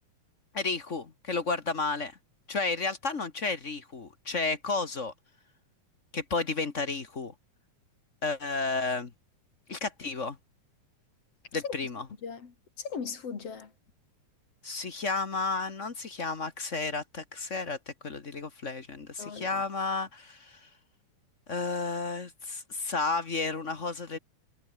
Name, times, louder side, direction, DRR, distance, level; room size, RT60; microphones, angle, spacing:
voice 1, 0.5-2.2 2.5-5.1 6.1-7.3 8.2-9.1 9.7-10.4 11.5-12.1 14.6-20.7 21.5-24.2, left 4 dB, 35° left, 1.3 m, -32 dB
voice 2, 12.2-13.7 19.2-19.6, left 6 dB, 55° left, 3.7 m, -38 dB
omnidirectional pair, 3.4 m